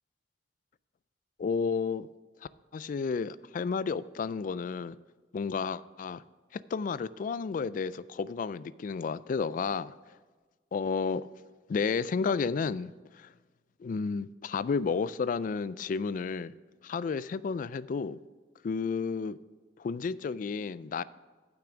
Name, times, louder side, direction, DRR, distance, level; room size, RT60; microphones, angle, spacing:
voice 1, 1.4-2.1 2.7-5.0 5.3-6.2 6.5-9.9 10.7-11.3 11.7-13.3 13.8-16.5 16.8-18.2 18.6-19.4 19.8-21.0, left 5 dB, 45° left, 0.3 m, -32 dB
12.0 x 6.0 x 5.0 m
head